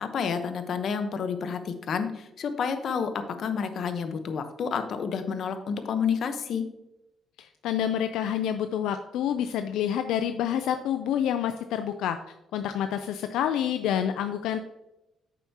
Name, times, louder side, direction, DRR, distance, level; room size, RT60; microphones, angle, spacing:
voice 1, 0.0-6.7, left 6 dB, 60° left, 9 dB, 0.9 m, -30 dB
voice 2, 7.4-12.2 12.5-14.6, left 9 dB, 90° left, 8 dB, 0.4 m, -28 dB
9.2 x 6.9 x 2.8 m, 0.91 s
cardioid pair, 90°, 0 cm